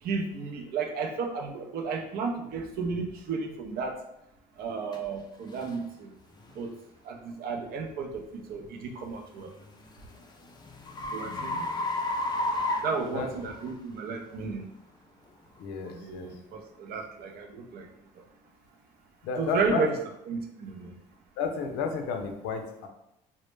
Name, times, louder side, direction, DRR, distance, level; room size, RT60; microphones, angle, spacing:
voice 1, 0.0-4.0 4.6-6.1 6.6-6.7 7.0-9.5 11.1-11.6 12.8-14.7 15.8-17.9 19.4-20.0 20.3-20.9, right 4 dB, 60° right, 3 dB, 0.5 m, -33 dB
sound 1, 4.9-5.0 5.6-5.8 6.4-6.6 9.2-13.7, left 2 dB, 25° left, 0.4 m, -32 dB
voice 2, 11.2-11.6 13.1-13.3 15.6-16.3 19.2-19.8 21.4-22.9, left 5 dB, 85° left, 5 dB, 0.4 m, -32 dB
2.1 x 2.0 x 3.1 m, 0.83 s
supercardioid pair, 80°, 18 cm